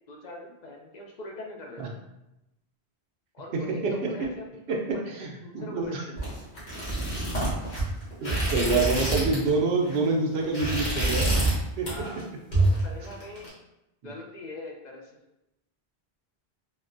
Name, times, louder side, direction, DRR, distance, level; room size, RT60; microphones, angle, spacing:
voice 1, 0.1-1.8 3.3-5.1 5.4-6.3 11.8-12.3 12.6-13.5 14.0-15.2, left 2 dB, 55° left, 0 dB, 0.5 m, -42 dB
voice 2, 3.5-4.1 4.7-5.3 5.5-6.0 8.2-11.3 11.8-11.9, right 3 dB, 75° right, 0 dB, 0.9 m, -26 dB
sound 1, 6.2-9.5 9.8-10.1 10.4-11.6 11.9-12.2 12.5-13.5, right 2 dB, 80° left, 1.5 m, -26 dB
3.8 x 2.1 x 2.5 m, 0.91 s
omnidirectional pair, 1.1 m